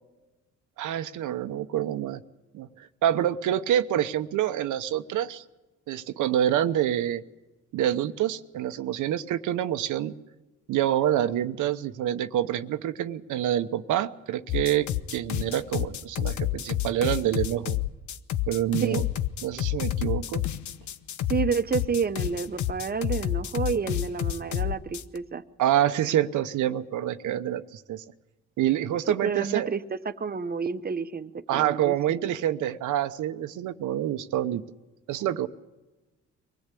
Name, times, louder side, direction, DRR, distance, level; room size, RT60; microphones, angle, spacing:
voice 1, 0.8-2.2 2.5-5.4 5.9-7.2 7.7-10.1 10.7-17.8 18.5-19.0 19.4-20.4 25.6-28.0 28.6-29.7 31.5-34.6 35.1-35.5, right 11 dB, 80° right, 9 dB, 1.0 m, -27 dB
sound 1, 14.5-25.2, left 13 dB, 75° left, 1.0 m, -29 dB
voice 2, 21.3-25.4 29.1-32.3, right 5 dB, 30° right, 11 dB, 1.1 m, -30 dB
24.0 x 17.5 x 8.4 m, 1.1 s
cardioid pair, 90°, 30 cm